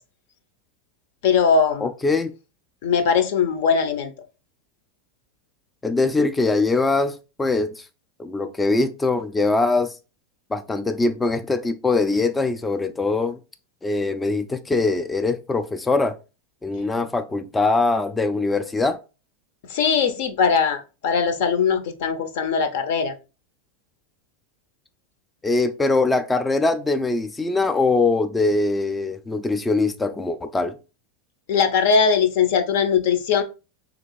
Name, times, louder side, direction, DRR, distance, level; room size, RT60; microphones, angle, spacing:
voice 1, 1.2-1.9 2.8-4.1 19.7-23.1 31.5-33.4, left 6 dB, 70° left, 0.6 m, -20 dB
voice 2, 1.8-2.3 5.8-7.8 8.2-9.9 10.5-13.4 13.8-16.2 16.6-19.0 25.4-30.8, left 3 dB, 10° left, 0.3 m, -22 dB
3.3 x 3.0 x 3.8 m
supercardioid pair, 130°, 0 cm